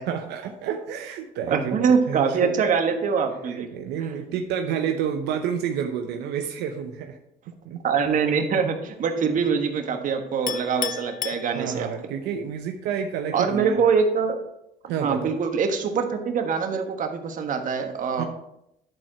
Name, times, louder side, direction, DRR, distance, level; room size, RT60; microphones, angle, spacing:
voice 1, 0.1-2.5 3.5-7.2 7.6-7.8 11.5-13.8 14.9-15.3 18.2-18.3, right 8 dB, 85° right, 5 dB, 0.8 m, -29 dB
voice 2, 1.5-3.7 4.0-4.2 7.8-11.9 13.3-14.4 15.0-18.3, right 6 dB, 50° right, 5 dB, 1.4 m, -24 dB
Chink clink, 10.5-12.1, left 10 dB, 55° left, 0.5 m, -33 dB
10.5 x 4.4 x 6.0 m, 0.81 s
cardioid pair, 110°, 17 cm